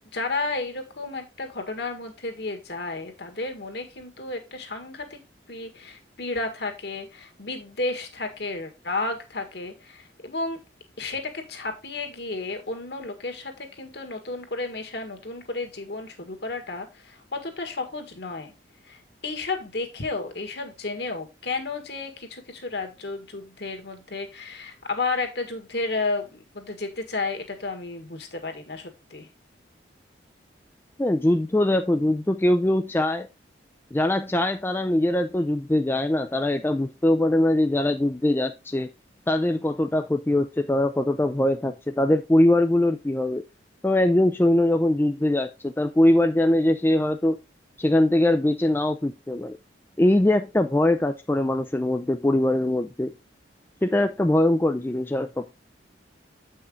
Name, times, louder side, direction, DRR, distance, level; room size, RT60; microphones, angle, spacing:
voice 1, 0.1-5.2 5.5-10.6 11.0-18.5 18.8-29.3, left 3 dB, 60° left, 1.7 m, -32 dB
voice 2, 31.0-33.3 33.9-38.9 39.3-43.4 43.8-47.4 47.8-49.6 50.0-53.1 53.8-55.5, left 1 dB, 10° left, 0.3 m, -22 dB
8.1 x 5.6 x 3.7 m
head